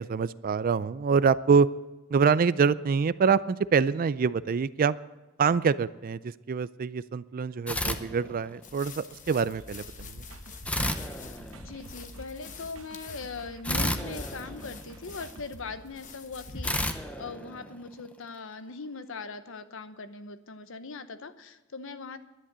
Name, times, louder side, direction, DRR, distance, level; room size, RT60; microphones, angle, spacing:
voice 1, 0.0-1.7 2.1-4.9 5.4-10.2, right 5 dB, 45° right, 17 dB, 0.4 m, -25 dB
sound 1, 7.7-8.8 10.6-12.0 13.6-15.3 16.6-18.2, left 1 dB, 5° left, 0.8 m, -32 dB
sound 2, 8.6-16.9, left 3 dB, 40° left, 1.1 m, -45 dB
sound 3, 9.5-15.8, right 2 dB, 80° right, 1.0 m, -50 dB
voice 2, 11.5-22.2, left 4 dB, 65° left, 11 dB, 0.9 m, -40 dB
11.0 x 10.0 x 7.9 m, 1.1 s
head